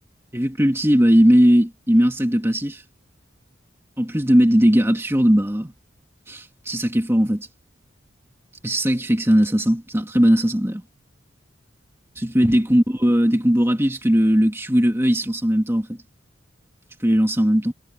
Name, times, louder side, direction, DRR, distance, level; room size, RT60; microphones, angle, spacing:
voice 1, 0.3-2.8 4.0-5.7 6.3-7.5 8.6-10.8 12.2-16.0 17.0-17.7, equal, 15° right, 2.2 m, -18 dB
head